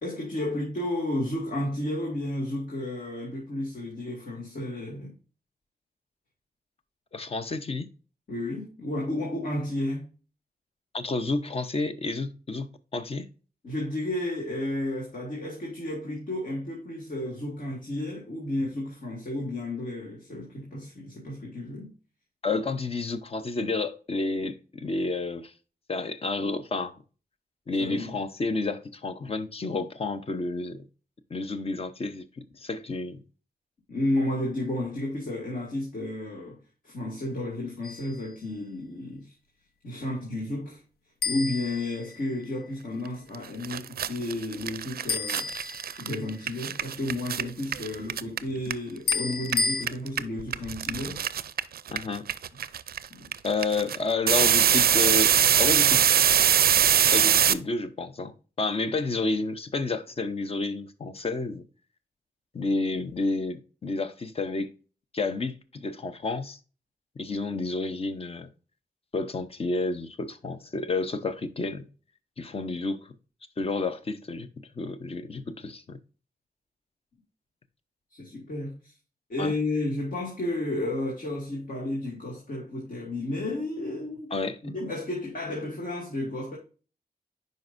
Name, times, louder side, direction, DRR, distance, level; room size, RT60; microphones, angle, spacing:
voice 1, 0.0-5.1 8.3-10.1 13.6-21.9 27.8-28.2 33.9-36.6 36.8-39.3 39.8-40.8 41.3-51.2 53.1-53.3 78.1-78.9 79.3-86.6, left 1 dB, 60° left, 2.1 m, -32 dB
voice 2, 7.1-7.9 10.9-13.3 22.4-25.5 25.9-27.0 27.7-30.9 31.3-33.2 51.9-52.2 53.4-55.3 55.6-56.0 57.1-61.6 62.5-64.7 65.1-66.6 67.2-68.5 69.1-71.9 72.4-73.1 73.6-74.5 74.8-76.0 79.4-79.5 84.3-84.6, left 3 dB, 40° left, 0.7 m, -30 dB
sound 1, 37.8-38.3 41.2-42.6 45.1-46.4 49.1-49.9, left 4 dB, 85° left, 0.7 m, -31 dB
sound 2, 43.3-43.4 43.6-49.1 49.4-57.5, right 9 dB, 75° right, 0.4 m, -22 dB
9.2 x 5.3 x 2.5 m
wide cardioid pair, 135°, 16 cm